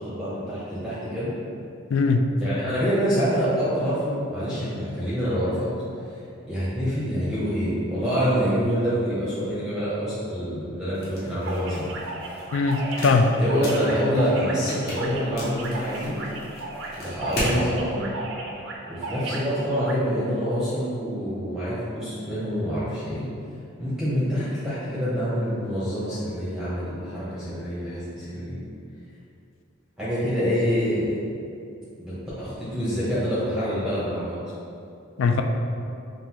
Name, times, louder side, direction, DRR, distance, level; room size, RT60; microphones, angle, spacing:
voice 1, 0.0-1.3 2.4-5.7 6.5-11.9 13.4-16.2 17.0-18.1 18.9-23.3 23.8-28.6 30.0-31.2 32.0-34.4, equal, 5° right, -12 dB, 0.7 m, -26 dB
voice 2, 1.9-2.2 12.5-13.3 35.2-35.4, left 4 dB, 65° left, 5 dB, 0.3 m, -20 dB
sound 1, 10.9-17.6, left 1 dB, 50° left, 0.9 m, -36 dB
sound 2, 11.4-19.9, right 2 dB, 60° right, 0.5 m, -35 dB
5.3 x 2.5 x 2.9 m, 2.5 s
head